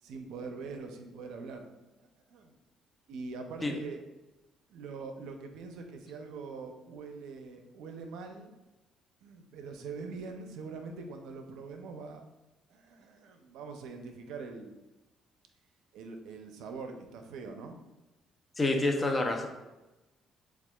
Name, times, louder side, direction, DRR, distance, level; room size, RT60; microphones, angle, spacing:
voice 1, 0.0-1.7 2.3-2.6 3.1-4.1 4.7-8.5 9.2-12.3 12.7-14.7 15.9-17.8, right 4 dB, 85° right, 5 dB, 0.5 m, -43 dB
voice 2, 18.6-19.5, left 2 dB, 20° left, 3 dB, 0.5 m, -28 dB
7.1 x 2.4 x 2.3 m, 1.1 s
cardioid pair, 115°, 0 cm